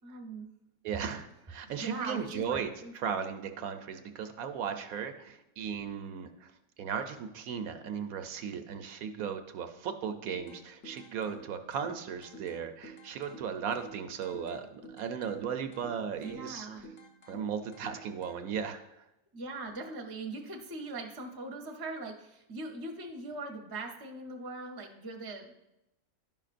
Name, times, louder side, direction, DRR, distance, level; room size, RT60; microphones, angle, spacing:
voice 1, 0.0-0.5 1.6-3.1 16.1-16.9 19.3-25.5, right 2 dB, 20° right, 2 dB, 0.6 m, -41 dB
voice 2, 0.8-6.5 6.8-16.7 17.3-18.8, right 7 dB, 80° right, 7 dB, 1.1 m, -36 dB
sound 1, 10.3-18.3, right 1 dB, 55° left, 1.4 m, -52 dB
11.0 x 5.8 x 2.5 m, 0.88 s
omnidirectional pair, 1.5 m